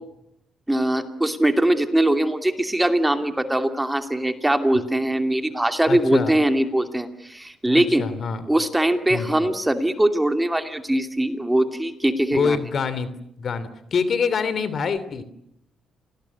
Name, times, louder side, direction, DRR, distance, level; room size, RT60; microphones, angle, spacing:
voice 1, 0.7-8.1 8.5-12.6, right 1 dB, 10° right, 7 dB, 2.6 m, -21 dB
voice 2, 5.9-6.3 7.7-8.5 9.1-9.5 12.3-13.1 13.4-15.2, left 5 dB, 55° left, 14 dB, 2.9 m, -25 dB
28.0 x 19.5 x 9.6 m, 0.79 s
cardioid pair, 90°, 0 cm